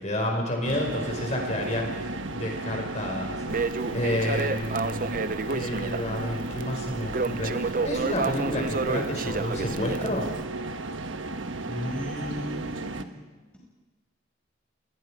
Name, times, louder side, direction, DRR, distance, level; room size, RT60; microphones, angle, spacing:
voice 1, 0.0-5.2 5.5-10.3, left 1 dB, 35° left, 1 dB, 5.1 m, -30 dB
sound 1, 0.6-13.0, right 2 dB, 80° right, 1.2 m, -34 dB
Crackle, 3.5-10.4, right 3 dB, 45° right, 0.7 m, -30 dB
voice 2, 11.7-13.1, equal, 5° left, -3 dB, 5.2 m, -35 dB
28.5 x 21.0 x 4.9 m, 1.2 s
head